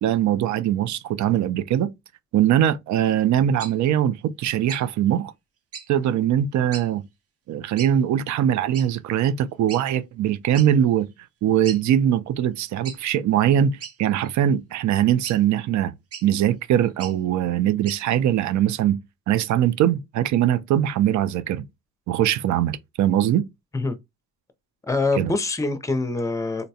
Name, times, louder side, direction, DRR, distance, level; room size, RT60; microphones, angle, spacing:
voice 1, 0.0-1.9 2.3-5.3 5.9-7.0 7.5-11.1 11.4-15.9 16.2-19.0 19.3-21.6 22.1-23.4 25.2-25.3, right 10 dB, 70° right, 0.5 m, -21 dB
sound 1, 3.6-3.7 4.7-4.9 5.7-5.9 6.7-6.9 7.8-7.9 8.7-8.9 9.7-9.8 10.5-10.7 11.1-11.2 11.6-11.8 12.8-13.0 13.8-14.3 15.2-15.4 16.1-16.3 16.9-17.2 17.8-18.0, right 6 dB, 50° right, 1.0 m, -37 dB
voice 2, 24.9-26.7, left 3 dB, 10° left, 0.6 m, -24 dB
3.9 x 2.2 x 2.7 m
cardioid pair, 90°, 30 cm